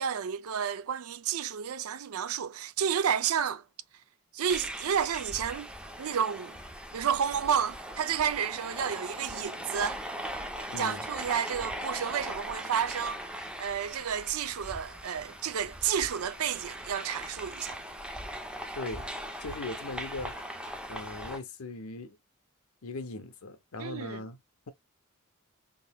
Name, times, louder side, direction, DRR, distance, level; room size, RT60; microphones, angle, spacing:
voice 1, 0.0-3.6 4.3-5.7 6.0-6.5 6.9-10.0 10.8-13.2 13.6-17.8 23.8-24.2, right 8 dB, 80° right, 0.4 m, -31 dB
sound 1, 4.5-21.4, equal, 5° right, 0.6 m, -40 dB
voice 2, 10.7-11.1 18.7-19.1 19.4-20.4 20.9-22.2 22.8-24.4, left 2 dB, 85° left, 0.8 m, -39 dB
3.8 x 3.8 x 2.2 m
head